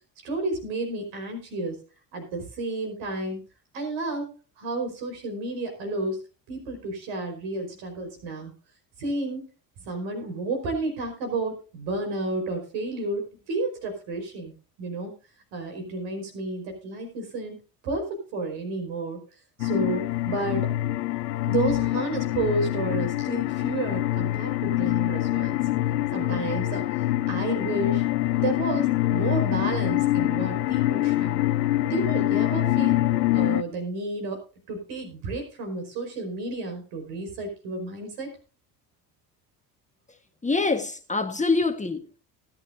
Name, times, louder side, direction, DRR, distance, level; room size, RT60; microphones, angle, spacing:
voice 1, 0.2-1.8 2.1-3.4 3.7-6.2 6.5-8.5 9.0-9.4 9.9-15.1 15.5-17.6 17.8-19.2 19.6-20.7 21.5-25.6 26.1-31.4 31.8-33.0 33.3-34.4 34.7-38.3, right 2 dB, 65° right, 5.0 m, -31 dB
sound 1, 19.6-33.6, left 15 dB, 80° left, 0.7 m, -25 dB
voice 2, 40.4-42.2, left 3 dB, 15° left, 1.5 m, -25 dB
19.5 x 9.0 x 2.7 m
hypercardioid pair, 65°, 48 cm